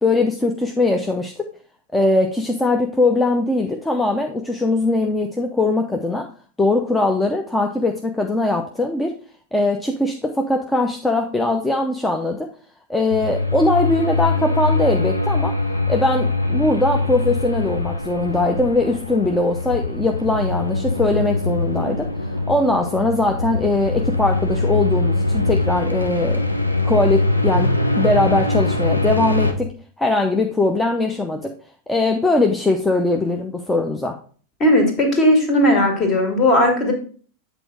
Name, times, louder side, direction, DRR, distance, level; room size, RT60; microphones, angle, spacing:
voice 1, 0.0-1.5 1.9-6.3 6.6-9.2 9.5-12.5 12.9-15.6 15.9-22.1 22.5-26.4 26.8-29.7 30.0-31.5 31.9-34.2, left 2 dB, 10° left, 3 dB, 0.7 m, -20 dB
sound 1, 13.1-29.5, left 2 dB, 85° left, 0.8 m, -22 dB
voice 2, 34.6-36.9, left 1 dB, 30° left, 3 dB, 2.1 m, -16 dB
8.0 x 4.0 x 4.6 m, 0.43 s
figure-of-eight pair, 90°, 0 cm